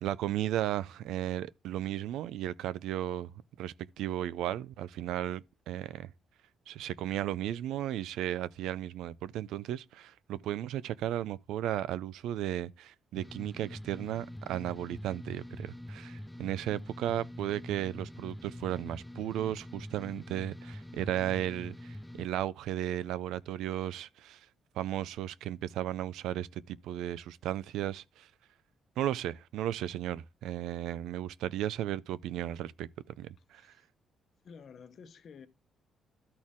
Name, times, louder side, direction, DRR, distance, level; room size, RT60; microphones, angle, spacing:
voice 1, 0.0-6.1 6.7-24.5 24.8-28.3 29.0-32.9 33.2-33.7, right 12 dB, 85° right, 0.4 m, -35 dB
sound 1, 13.2-22.3, left 1 dB, 5° left, 0.4 m, -45 dB
voice 2, 34.4-35.5, left 6 dB, 60° left, 0.9 m, -51 dB
12.5 x 4.2 x 3.6 m
cardioid pair, 90°, 0 cm